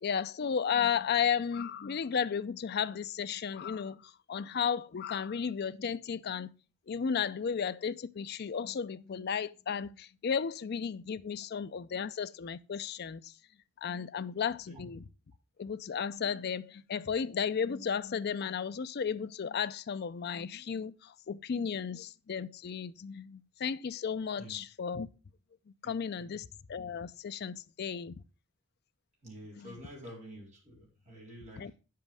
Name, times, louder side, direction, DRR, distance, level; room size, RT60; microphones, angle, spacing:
voice 1, 0.0-6.5 6.9-13.3 13.8-15.0 15.6-25.1 25.7-28.2 29.6-29.8 31.6-31.7, left 7 dB, 50° left, 0.4 m, -34 dB
voice 2, 25.8-26.4 27.5-27.6 29.2-31.7, equal, 35° right, 4.1 m, -49 dB
8.9 x 7.6 x 3.4 m
head